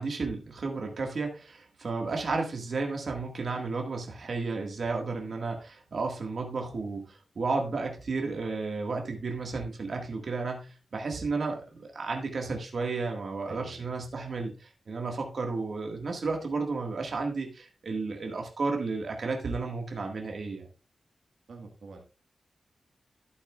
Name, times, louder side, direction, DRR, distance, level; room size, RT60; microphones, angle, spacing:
voice 1, 0.0-20.6, right 3 dB, 60° right, 2 dB, 1.8 m, -33 dB
voice 2, 13.5-13.9 21.5-22.0, right 4 dB, 80° right, 2 dB, 1.7 m, -46 dB
12.0 x 8.3 x 2.4 m, 0.32 s
wide cardioid pair, 145°, 0 cm